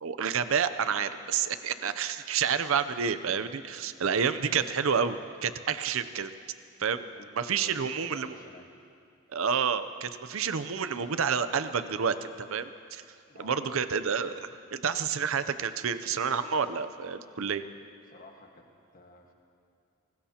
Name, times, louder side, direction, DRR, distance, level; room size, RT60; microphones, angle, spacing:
voice 1, 0.0-6.3 6.8-7.0 7.4-8.3 9.3-13.0 13.4-17.6, right 6 dB, 70° right, 12 dB, 0.6 m, -29 dB
voice 2, 7.2-8.7 13.3-13.9 18.1-19.3, left 1 dB, 40° left, 2 dB, 1.5 m, -51 dB
24.5 x 19.0 x 2.9 m, 2.4 s
head